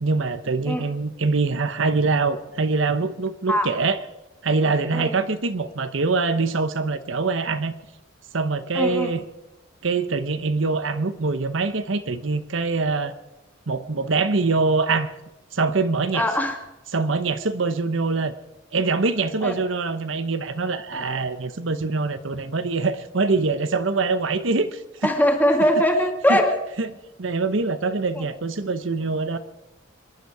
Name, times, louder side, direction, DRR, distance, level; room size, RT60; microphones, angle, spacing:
voice 1, 0.0-4.0 4.4-7.7 8.3-9.2 9.8-13.1 13.7-15.1 15.5-16.3 16.9-18.3 18.7-25.1 26.3-26.4 26.8-26.9 27.2-29.4, right 3 dB, 70° right, 11 dB, 0.9 m, -24 dB
voice 2, 8.7-9.1 16.1-16.6 19.4-19.5 25.0-26.6, equal, 10° left, 3 dB, 2.0 m, -21 dB
26.0 x 11.0 x 4.8 m, 0.97 s
head